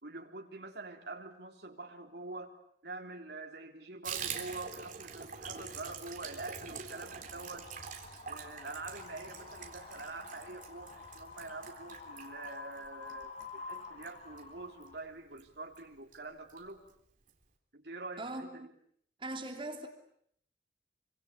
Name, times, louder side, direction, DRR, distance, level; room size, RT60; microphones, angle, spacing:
voice 1, 0.0-2.6 2.8-7.7 8.3-16.8 17.7-18.5, right 3 dB, 65° right, 3.9 m, -45 dB
Water tap faucet / Bathtub (filling or washing), 4.0-15.0 15.3-15.5 15.7-15.8 16.1-16.6 16.9-17.0 17.3-17.4, right 6 dB, 45° right, 3.6 m, -45 dB
Wind, 6.8-15.0, left 4 dB, 35° left, 2.0 m, -49 dB
voice 2, 18.2-18.7 19.2-19.9, right 2 dB, 30° right, 3.2 m, -40 dB
26.5 x 25.5 x 8.7 m
head